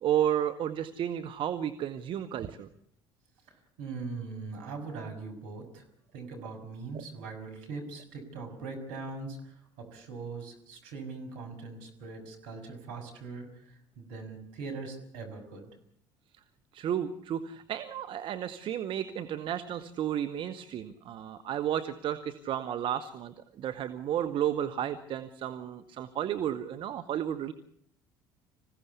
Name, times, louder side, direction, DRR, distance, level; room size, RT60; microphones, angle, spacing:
voice 1, 0.0-2.7 16.7-27.5, right 10 dB, 50° right, 9 dB, 1.3 m, -32 dB
voice 2, 3.8-5.8 6.1-15.7, right 4 dB, 70° right, 4 dB, 6.3 m, -41 dB
26.0 x 16.5 x 8.3 m, 0.67 s
hypercardioid pair, 60°, 11 cm